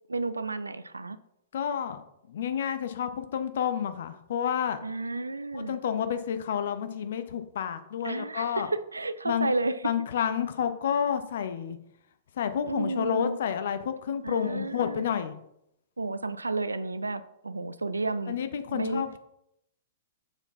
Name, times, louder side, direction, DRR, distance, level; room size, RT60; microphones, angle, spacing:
voice 1, 0.1-1.2 4.8-5.8 8.0-9.8 12.7-13.4 14.2-15.0 16.0-18.4 18.7-19.0, right 3 dB, 80° right, 13 dB, 0.4 m, -32 dB
voice 2, 1.5-2.0 2.3-4.8 5.5-8.7 9.2-9.5 9.8-11.8 12.4-15.3 18.3-19.2, left 8 dB, 55° left, 10 dB, 0.6 m, -30 dB
6.7 x 4.7 x 4.1 m, 0.78 s
figure-of-eight pair, 105°, 0 cm